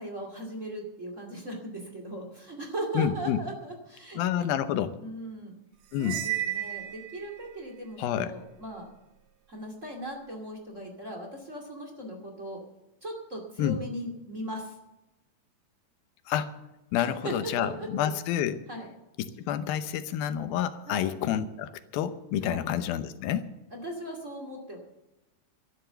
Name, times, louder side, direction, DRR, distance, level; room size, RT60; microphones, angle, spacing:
voice 1, 0.0-4.6 5.0-5.5 6.0-8.9 9.5-12.6 13.0-14.8 17.0-18.1 18.7-18.9 20.9-21.1 22.4-22.6 23.7-24.8, right 1 dB, 25° right, 3 dB, 2.3 m, -38 dB
voice 2, 2.9-3.4 4.2-4.9 5.9-6.2 8.0-8.3 13.6-13.8 16.3-16.5 16.9-18.6 19.2-23.5, left 10 dB, 90° left, 11 dB, 2.7 m, -29 dB
Cymbal, 6.0-7.4, right 13 dB, 70° right, 2.4 m, -33 dB
13.0 x 11.5 x 6.8 m, 0.96 s
omnidirectional pair, 4.1 m